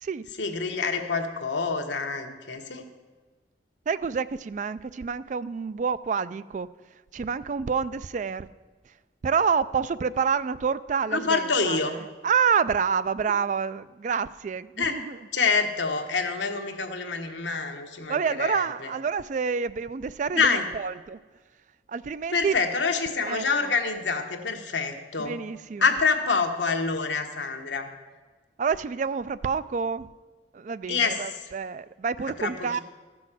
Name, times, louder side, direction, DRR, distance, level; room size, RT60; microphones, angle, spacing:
voice 1, 0.4-2.8 11.1-12.0 14.8-15.0 15.3-18.9 20.3-20.6 22.3-25.4 25.8-27.9 30.9-31.2 32.4-32.8, left 4 dB, 90° left, 4 dB, 1.2 m, -26 dB
voice 2, 3.9-6.7 7.1-8.5 8.9-9.0 9.2-15.2 18.1-21.2 21.9-22.6 23.2-23.7 25.2-25.8 28.6-30.1 30.5-32.8, right 6 dB, 45° right, 16 dB, 0.3 m, -28 dB
14.0 x 6.2 x 7.4 m, 1.4 s
head